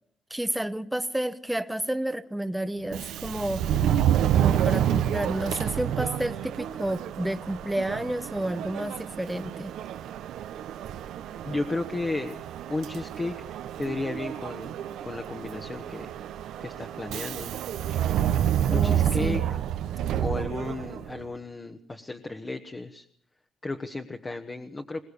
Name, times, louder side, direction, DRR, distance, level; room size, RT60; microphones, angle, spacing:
voice 1, 0.3-3.8 4.4-9.7 18.7-19.5, right 1 dB, 5° right, 13 dB, 1.1 m, -30 dB
Subway metro underground, 2.8-21.2, right 10 dB, 80° right, 1.0 m, -29 dB
voice 2, 11.4-12.4 12.7-13.5 13.8-14.7 15.0-16.1 16.6-17.5 18.7-19.6 20.2-23.0 23.6-25.0, left 2 dB, 25° left, 4 dB, 1.3 m, -33 dB
22.5 x 19.5 x 7.0 m, 0.65 s
cardioid pair, 90°, 0 cm